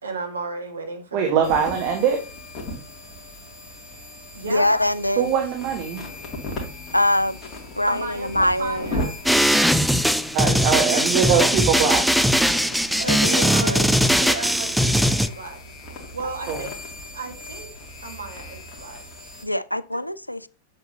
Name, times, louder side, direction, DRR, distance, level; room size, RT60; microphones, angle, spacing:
voice 1, 0.0-1.8 4.3-4.7 7.9-9.2 10.8-11.2 13.0-13.8 14.1-15.6 16.1-16.7 17.1-17.7 18.0-19.0, right 3 dB, 75° right, 1.6 m, -34 dB
voice 2, 1.1-2.2 5.2-6.0 10.3-12.1 16.5-16.6, right 7 dB, 45° right, 1.4 m, -22 dB
sound 1, 1.4-19.4, left 1 dB, 30° left, 2.4 m, -37 dB
voice 3, 4.5-5.3 6.9-7.4 7.8-8.9 13.1-14.0 19.4-20.5, left 1 dB, 85° left, 0.4 m, -23 dB
sound 2, 9.3-15.3, equal, ahead, 0.4 m, -20 dB
7.7 x 7.5 x 2.8 m
figure-of-eight pair, 90°, 0 cm